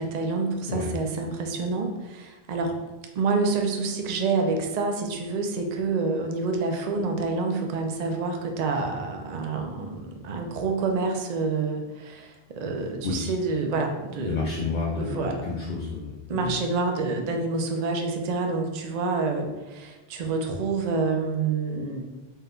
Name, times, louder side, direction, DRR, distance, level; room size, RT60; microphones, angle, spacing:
voice 1, 0.0-2.7 3.2-14.5 15.0-15.4 16.3-22.0, right 4 dB, 50° right, 3 dB, 0.5 m, -28 dB
voice 2, 14.1-16.5, left 4 dB, 55° left, -4 dB, 0.6 m, -30 dB
4.2 x 2.2 x 3.7 m, 1.1 s
omnidirectional pair, 1.1 m